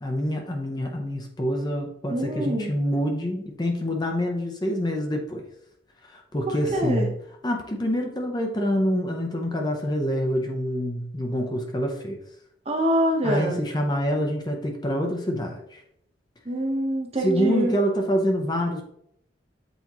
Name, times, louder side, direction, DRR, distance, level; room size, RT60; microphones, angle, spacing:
voice 1, 0.0-5.4 6.1-7.1 7.4-12.2 13.2-15.8 17.2-18.9, equal, 20° left, 2 dB, 0.6 m, -26 dB
voice 2, 2.1-2.7 6.7-7.1 12.7-13.6 16.4-17.7, right 1 dB, 30° right, 1 dB, 1.0 m, -25 dB
8.0 x 4.2 x 3.0 m, 0.72 s
head